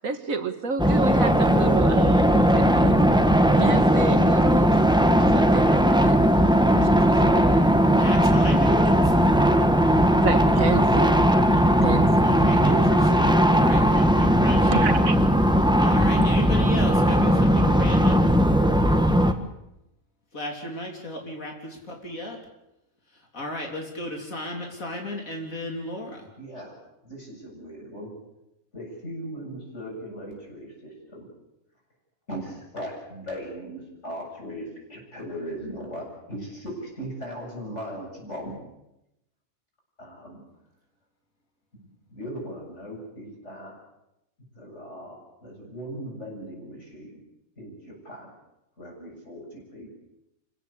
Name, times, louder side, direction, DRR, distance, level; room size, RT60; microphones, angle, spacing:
voice 1, 0.0-3.1 3.5-4.8 5.2-6.2 6.7-7.7 10.0-11.2 11.8-12.1 12.6-12.9 14.3-15.2 16.2-16.3, right 4 dB, 75° right, 8 dB, 2.1 m, -30 dB
sound 1, 0.8-19.3, equal, 5° right, 1.2 m, -18 dB
voice 2, 7.9-9.0 11.5-11.7 12.2-14.9 15.8-18.3 20.3-22.4 23.3-26.2, left 1 dB, 75° left, 1 dB, 3.7 m, -34 dB
voice 3, 26.4-26.7 27.0-28.1 28.7-31.3 32.3-38.5 40.0-40.4 42.1-43.7 44.5-47.2 47.6-48.3 48.8-49.9, equal, 55° left, -1 dB, 8.2 m, -38 dB
26.5 x 16.5 x 8.5 m, 0.88 s
omnidirectional pair, 1.4 m